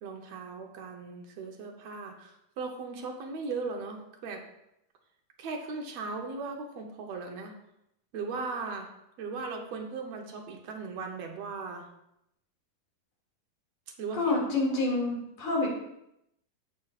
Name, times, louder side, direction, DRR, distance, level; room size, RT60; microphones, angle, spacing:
voice 1, 0.0-4.4 5.4-7.5 8.1-8.9 9.2-11.9 14.0-14.3 14.7-14.8, right 4 dB, 65° right, 2 dB, 1.8 m, -38 dB
voice 2, 14.1-15.7, left 2 dB, 70° left, -2 dB, 3.6 m, -27 dB
16.0 x 5.6 x 2.4 m, 0.82 s
omnidirectional pair, 3.6 m